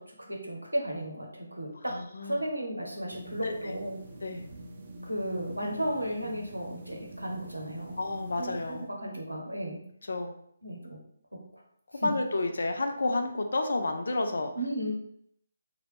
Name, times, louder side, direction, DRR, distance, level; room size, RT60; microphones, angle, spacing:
voice 1, 0.0-1.9 2.2-4.0 5.0-8.0 8.4-9.8 10.6-11.0 11.3-11.4 12.0-12.1 14.6-14.9, right 1 dB, 80° right, 0 dB, 0.9 m, -34 dB
voice 2, 1.9-2.4 3.4-3.8 4.2-4.5 8.0-8.9 10.1-10.3 11.9-14.5, left 2 dB, 55° left, 5 dB, 0.5 m, -30 dB
sound 1, 3.1-8.9, right 1 dB, 35° right, 0.5 m, -45 dB
3.1 x 2.4 x 3.2 m, 0.70 s
figure-of-eight pair, 145°, 0 cm